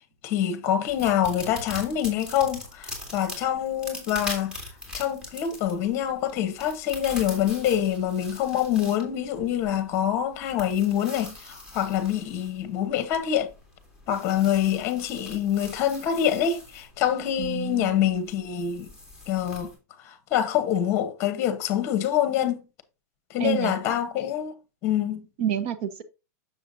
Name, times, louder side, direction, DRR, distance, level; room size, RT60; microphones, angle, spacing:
voice 1, 0.2-4.6 4.9-13.5 14.1-18.9 19.3-19.7 20.0-22.6 23.3-24.5 24.8-25.2, left 10 dB, 30° left, 1.0 m, -25 dB
sound 1, 0.9-19.7, left 2 dB, 10° right, 2.3 m, -42 dB
voice 2, 17.4-17.9 23.4-23.7 25.4-26.0, right 9 dB, 50° right, 1.0 m, -28 dB
7.0 x 6.6 x 2.7 m
supercardioid pair, 165°, 9 cm